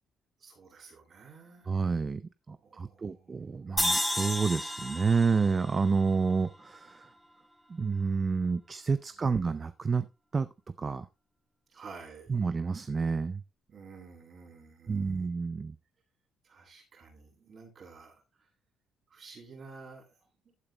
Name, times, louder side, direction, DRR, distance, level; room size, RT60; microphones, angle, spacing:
voice 1, 0.4-1.7 2.6-3.6 11.7-12.4 13.7-15.3 16.4-18.5 19.1-20.2 20.4-20.5, right 4 dB, 50° right, 6.9 m, -51 dB
voice 2, 1.7-7.1 7.7-10.1 10.3-10.5 10.8-11.1 12.3-13.4 14.9-15.7, right 5 dB, 35° right, 0.5 m, -29 dB
sound 1, 3.8-7.0, left 1 dB, 5° left, 2.3 m, -33 dB
15.0 x 8.7 x 2.2 m
cardioid pair, 90°, 0 cm